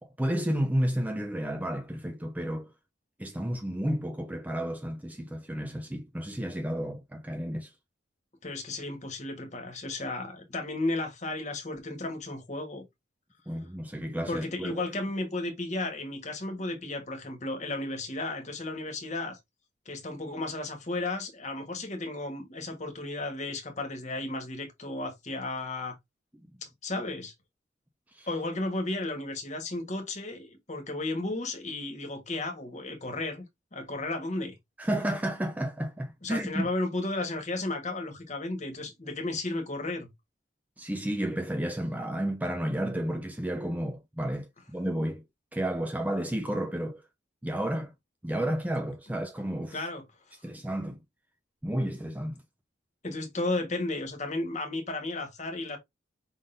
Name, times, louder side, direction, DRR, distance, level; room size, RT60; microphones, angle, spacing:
voice 1, 0.0-2.7 3.2-7.7 13.5-14.8 28.1-28.3 34.8-36.7 40.8-45.2 45.5-47.0 47.4-47.9 48.2-49.8 50.4-51.0 51.6-52.4, right 1 dB, 10° right, 0.5 m, -31 dB
voice 2, 8.4-12.8 14.3-19.4 19.8-25.9 26.6-27.3 28.3-33.4 33.7-34.5 36.2-40.1 49.7-50.0 53.0-55.8, left 2 dB, 40° left, 1.4 m, -34 dB
5.2 x 3.7 x 2.6 m
head